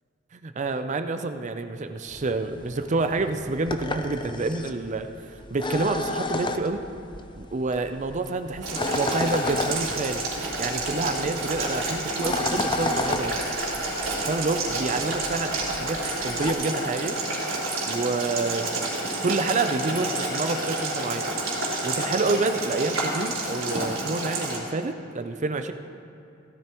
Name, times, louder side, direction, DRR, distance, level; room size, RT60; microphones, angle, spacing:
voice 1, 0.3-5.1 5.5-6.8 7.3-10.2 10.6-13.3 14.2-17.2 17.8-21.2 21.8-25.7, right 3 dB, 35° right, 8 dB, 0.5 m, -28 dB
sound 1, 2.1-16.5, left 2 dB, 25° left, 0.5 m, -33 dB
Boiling, 8.6-24.6, right 2 dB, 85° right, 3.5 m, -29 dB
16.5 x 13.5 x 3.0 m, 2.6 s
head